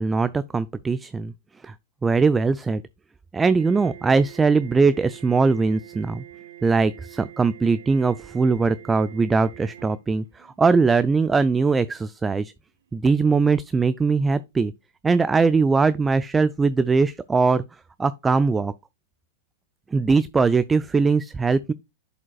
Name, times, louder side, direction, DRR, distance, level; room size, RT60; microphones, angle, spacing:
voice 1, 0.0-1.3 1.6-1.7 2.0-2.8 3.3-6.2 6.6-12.5 12.9-14.7 15.0-17.6 18.0-18.7 19.9-21.7, right 4 dB, 15° right, 0.3 m, -21 dB
sound 1, 3.6-10.9 12.0-12.2 12.7-13.0 15.1-15.2, right 13 dB, 75° right, 0.6 m, -45 dB
10.5 x 5.1 x 2.3 m
hypercardioid pair, 110°, 0 cm